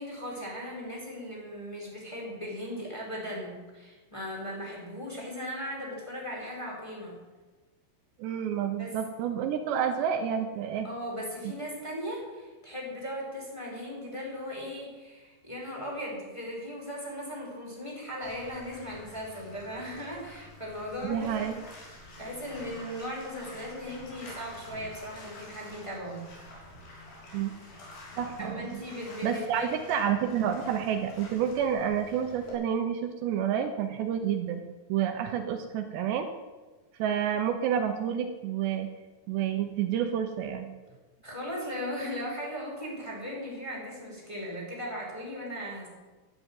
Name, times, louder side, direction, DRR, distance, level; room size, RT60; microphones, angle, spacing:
voice 1, 0.0-7.1 8.8-9.0 10.8-21.5 22.2-26.2 28.4-29.7 41.2-45.9, equal, 5° left, -3 dB, 4.3 m, -38 dB
voice 2, 8.2-10.9 11.4-11.5 21.0-21.6 27.3-27.5 28.2-28.8 29.2-34.6 34.9-36.3 37.0-38.9 39.3-40.7, right 8 dB, 75° right, 6 dB, 3.1 m, -29 dB
Bathtub (filling or washing), 18.2-32.5, left 1 dB, 70° left, 5.8 m, -48 dB
12.5 x 11.0 x 9.0 m, 1.2 s
omnidirectional pair, 5.1 m